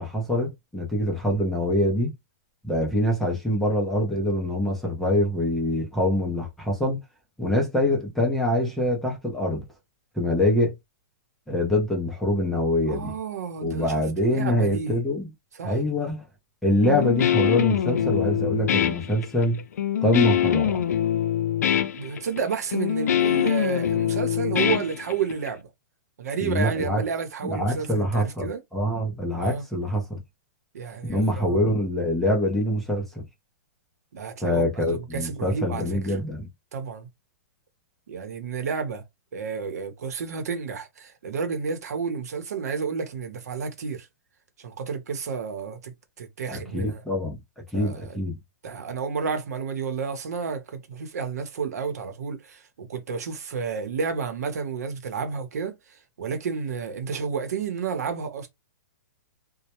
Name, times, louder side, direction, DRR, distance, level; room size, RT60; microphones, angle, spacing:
voice 1, 0.0-2.1 2.6-7.0 7.4-9.6 10.2-10.7 11.5-13.1 13.6-15.3 15.6-16.2 16.6-19.6 20.0-20.8 26.4-27.0 27.4-30.2 31.1-33.2 34.4-36.5 46.5-47.4 47.7-48.4, left 1 dB, ahead, 0.4 m, -24 dB
voice 2, 12.9-14.0 14.3-15.0 15.5-15.8 21.9-25.7 26.2-28.6 29.4-29.6 30.7-31.6 34.1-36.2 36.7-37.1 38.1-39.0 39.3-44.1 44.6-47.0 47.7-48.2 48.6-58.5, right 6 dB, 70° right, 0.8 m, -31 dB
Guitar, 16.8-25.5, left 10 dB, 75° left, 0.5 m, -24 dB
2.1 x 2.0 x 2.9 m
hypercardioid pair, 170°, 9 cm